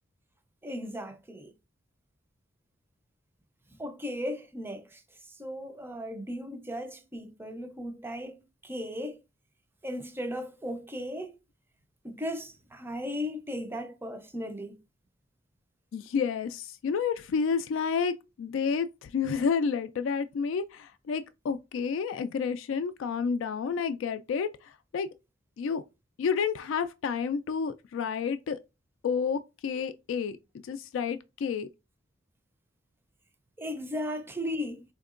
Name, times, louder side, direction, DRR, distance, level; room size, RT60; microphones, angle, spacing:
voice 1, 0.6-1.5 3.8-5.0 5.3-9.2 9.8-11.4 12.0-14.8 33.6-34.8, left 1 dB, 10° right, 0.5 m, -36 dB
voice 2, 15.9-24.5 24.9-25.1 25.6-25.8 26.2-28.6 29.0-31.7, left 6 dB, 75° left, 0.3 m, -30 dB
4.3 x 2.8 x 2.4 m
head